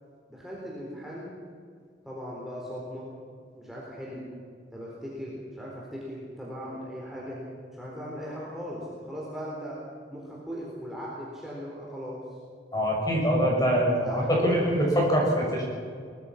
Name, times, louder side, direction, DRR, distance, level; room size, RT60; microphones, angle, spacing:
voice 1, 0.3-1.4 2.0-3.1 3.5-4.3 4.7-7.4 7.7-9.8 10.1-12.2 14.0-15.0, equal, ahead, -5 dB, 4.1 m, -38 dB
voice 2, 12.7-15.6, equal, 20° left, -2 dB, 6.6 m, -24 dB
23.0 x 21.0 x 6.0 m, 2.2 s
head